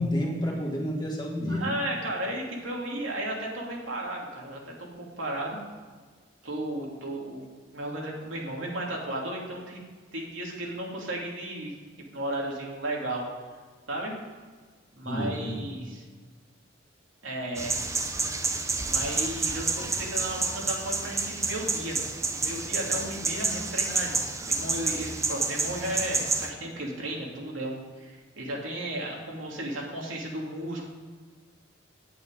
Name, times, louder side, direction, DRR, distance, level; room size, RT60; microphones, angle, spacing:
voice 1, 0.0-1.7 15.0-15.7, equal, 20° left, -2 dB, 2.1 m, -29 dB
voice 2, 1.5-5.6 6.4-7.5 7.7-9.8 10.1-11.7 12.1-13.3 13.9-14.1 14.9-16.0 17.2-17.8 18.8-22.0 22.3-30.8, right 1 dB, 85° right, -2 dB, 2.7 m, -34 dB
sound 1, 17.6-26.5, right 3 dB, 15° right, 0.7 m, -29 dB
9.9 x 8.5 x 5.3 m, 1.5 s
head